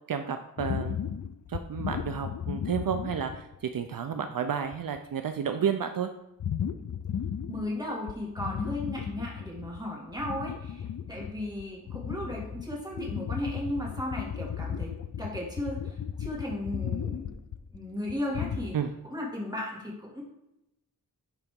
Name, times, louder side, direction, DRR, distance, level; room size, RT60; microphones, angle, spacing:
voice 1, 0.1-1.0 1.5-6.1 18.7-18.9, right 7 dB, 70° right, 7 dB, 0.5 m, -31 dB
sound 1, 0.6-3.6 4.1-4.2 4.6-5.0 6.4-7.8 8.1-9.8 10.1-18.7, left 8 dB, 60° left, 0.4 m, -35 dB
voice 2, 7.5-17.4 17.7-18.7 19.1-20.2, left 1 dB, 10° right, -3 dB, 2.2 m, -35 dB
10.5 x 3.9 x 3.7 m, 0.86 s
wide cardioid pair, 95°, 35 cm